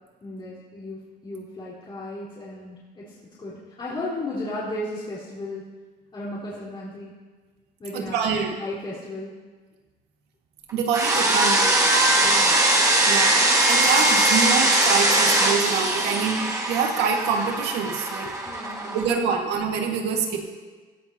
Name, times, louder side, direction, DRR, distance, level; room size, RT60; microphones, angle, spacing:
voice 1, 0.2-5.7 6.1-7.1 7.8-9.4 12.2-12.6 18.4-19.2 20.3-20.4, left 1 dB, 30° left, -8 dB, 4.2 m, -35 dB
voice 2, 7.9-8.6 10.7-11.7 13.1-13.3 13.7-18.3 18.9-20.4, right 6 dB, 85° right, 2 dB, 1.9 m, -25 dB
sound 1, 10.9-19.1, right 1 dB, 20° right, 1.9 m, -21 dB
16.0 x 15.5 x 2.9 m, 1.4 s
cardioid pair, 110°, 17 cm